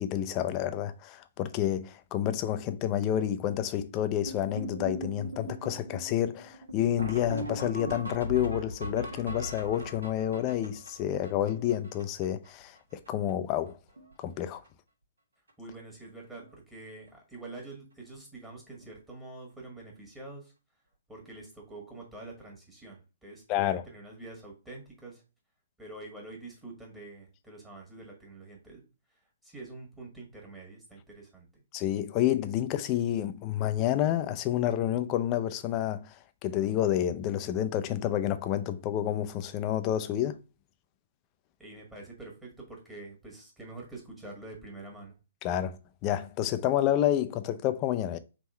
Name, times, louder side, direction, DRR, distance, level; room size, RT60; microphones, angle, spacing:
voice 1, 0.0-13.8 14.2-14.6 23.5-23.8 31.7-36.1 36.4-40.4 45.4-48.2, left 11 dB, 30° left, 0.4 m, -29 dB
sound 1, 4.3-12.5 12.8-12.9 13.1-13.3 13.6-14.1 14.4-14.7 15.5-15.6 16.0-16.1 16.4-16.5 18.8-18.9 21.2-21.3, right 1 dB, 85° right, 1.3 m, -39 dB
voice 2, 15.6-20.5 21.1-25.2 25.8-28.8 29.4-31.6 41.6-45.1, right 2 dB, 10° right, 1.5 m, -46 dB
3.6 x 3.0 x 4.3 m
hypercardioid pair, 130°, 0 cm